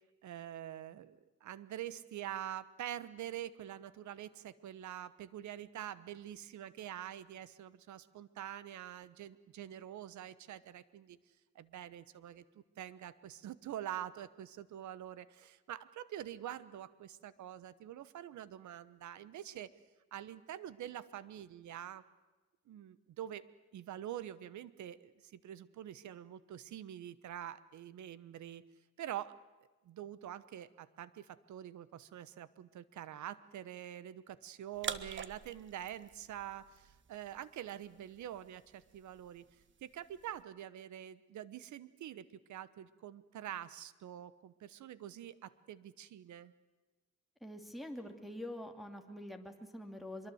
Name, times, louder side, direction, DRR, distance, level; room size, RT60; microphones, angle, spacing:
voice 1, 0.2-11.2 11.5-19.7 20.1-22.0 22.7-23.4 23.7-28.6 29.0-29.4 29.8-39.4 39.8-46.5, right 11 dB, 70° right, 17 dB, 1.2 m, -46 dB
sound 1, 34.7-40.4, right 6 dB, 40° right, 1.3 m, -48 dB
voice 2, 47.4-50.3, left 1 dB, ahead, 3 dB, 2.6 m, -45 dB
24.5 x 22.5 x 8.0 m, 1.2 s
cardioid pair, 90°, 30 cm